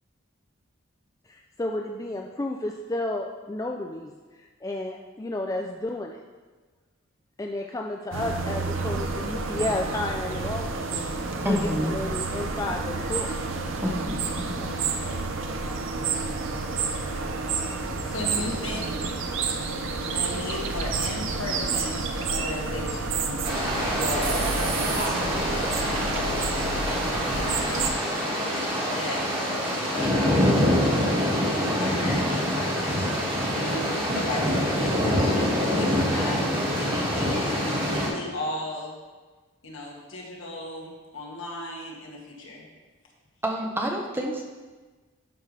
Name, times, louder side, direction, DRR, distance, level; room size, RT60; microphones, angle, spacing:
voice 1, 1.3-4.1 4.6-6.2 7.4-11.1 11.4-11.6 11.8-13.3, left 2 dB, 15° left, 2 dB, 0.3 m, -32 dB
sound 1, 8.1-27.9, right 4 dB, 75° right, 0.7 m, -29 dB
voice 2, 11.4-12.0 13.8-14.7 43.4-44.4, equal, 10° right, 0 dB, 0.7 m, -28 dB
voice 3, 17.8-18.9 20.0-23.4 23.9-24.5 24.8-27.8 28.3-36.4 36.8-38.9 39.6-42.7, left 2 dB, 75° left, -2 dB, 1.6 m, -36 dB
sound 2, 23.4-38.1, equal, 25° right, 1.9 m, -25 dB
11.0 x 5.3 x 3.3 m, 1.3 s
head